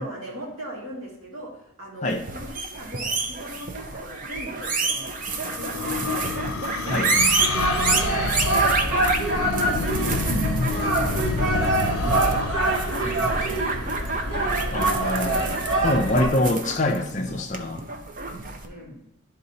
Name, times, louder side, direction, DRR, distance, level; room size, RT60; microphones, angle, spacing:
voice 1, 0.0-5.1 5.5-6.3 6.7-7.2 7.7-9.0 9.6-10.4 10.8-12.6 13.0-14.2 18.6-19.0, equal, 80° right, -3 dB, 2.1 m, -41 dB
sound 1, 2.1-18.7, right 3 dB, 40° right, 0.5 m, -28 dB
sound 2, 4.5-14.0, left 4 dB, 90° left, 0.5 m, -30 dB
sound 3, 7.4-16.3, right 2 dB, 55° right, 1.3 m, -25 dB
voice 2, 14.7-17.9, left 1 dB, 35° left, 2 dB, 0.5 m, -25 dB
11.5 x 3.9 x 2.8 m, 0.84 s
head